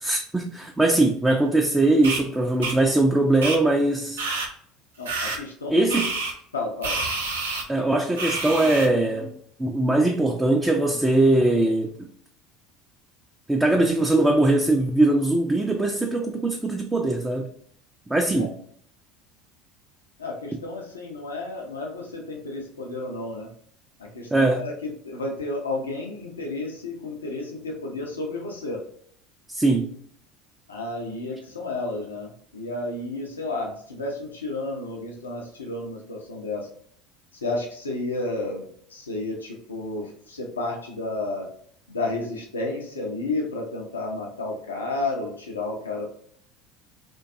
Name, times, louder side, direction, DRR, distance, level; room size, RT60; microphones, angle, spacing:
voice 1, 0.0-4.2 5.7-6.1 7.7-11.9 13.5-17.5 18.1-18.5 24.3-24.7 29.5-29.9, right 2 dB, 15° right, 0.3 m, -21 dB
sound 1, 2.0-2.2 2.6-2.7 3.4-3.6 4.2-4.5 5.1-5.4 5.9-6.3 6.8-7.6 8.2-8.9, right 3 dB, 80° right, 0.5 m, -28 dB
voice 2, 5.0-6.0 6.5-7.0 18.4-18.5 20.2-23.5 24.1-28.8 30.7-36.7 37.4-41.5 41.9-46.0, left 2 dB, 90° left, 0.4 m, -31 dB
2.5 x 2.2 x 2.5 m
hypercardioid pair, 70°, 0 cm